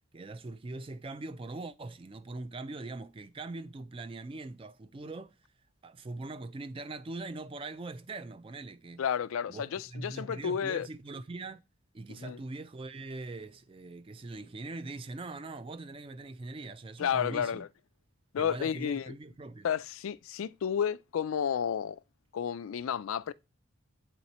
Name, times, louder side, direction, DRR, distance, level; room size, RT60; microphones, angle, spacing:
voice 1, 0.1-5.4 5.8-9.0 9.5-11.6 11.9-17.6 18.4-19.7, right 2 dB, 25° right, 0.3 m, -42 dB
voice 2, 9.0-10.9 12.2-12.4 17.0-17.7 18.3-19.1 19.6-22.0 22.3-23.3, left 8 dB, 75° left, 0.4 m, -31 dB
8.8 x 3.0 x 4.1 m
head